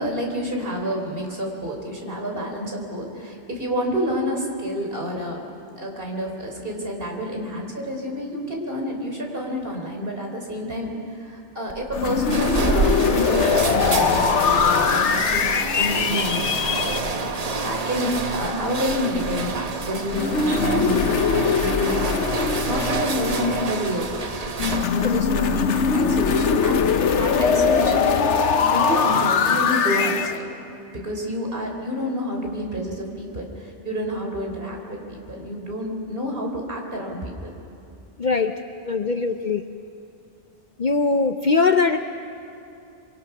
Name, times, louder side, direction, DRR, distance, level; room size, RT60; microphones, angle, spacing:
voice 1, 0.0-5.4 5.8-24.3 24.9-28.2 28.6-30.4 30.9-37.5, equal, 50° right, 1 dB, 3.8 m, -29 dB
sound 1, 11.7-25.2, right 4 dB, 35° right, 0.9 m, -28 dB
sound 2, 11.9-17.0 20.1-23.9 24.6-30.4, left 6 dB, 80° left, 1.2 m, -21 dB
voice 2, 38.2-38.5 38.8-39.7 40.8-42.0, left 4 dB, 50° left, 7 dB, 0.7 m, -21 dB
26.5 x 24.0 x 6.0 m, 2.6 s
omnidirectional pair, 1.2 m